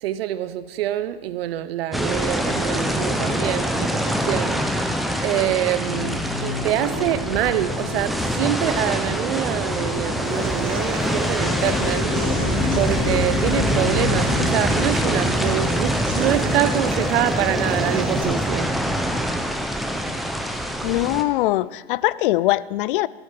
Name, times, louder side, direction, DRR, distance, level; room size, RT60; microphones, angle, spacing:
voice 1, 0.0-4.6 5.2-12.1 12.7-18.8, right 13 dB, 70° right, 13 dB, 0.8 m, -25 dB
sound 1, 1.9-21.2, equal, ahead, 0.6 m, -24 dB
sound 2, 5.9-14.5, left 6 dB, 75° left, 1.5 m, -31 dB
Human voice / Acoustic guitar, 10.2-18.2, right 3 dB, 25° right, 2.8 m, -34 dB
voice 2, 20.8-23.1, left 16 dB, 60° left, 20 dB, 0.4 m, -21 dB
14.0 x 8.1 x 5.1 m, 1.4 s
hypercardioid pair, 130°, 31 cm